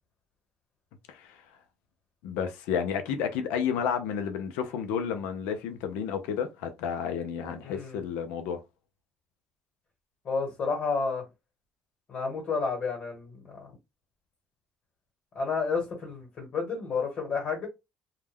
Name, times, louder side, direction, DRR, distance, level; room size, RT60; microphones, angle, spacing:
voice 1, 1.1-1.4 2.2-8.6, left 7 dB, 90° left, 0.5 m, -31 dB
voice 2, 7.6-8.0 10.2-11.2 12.1-13.7 15.3-17.7, left 4 dB, 50° left, 1.3 m, -31 dB
2.2 x 2.1 x 3.3 m
supercardioid pair, 85°, 3 cm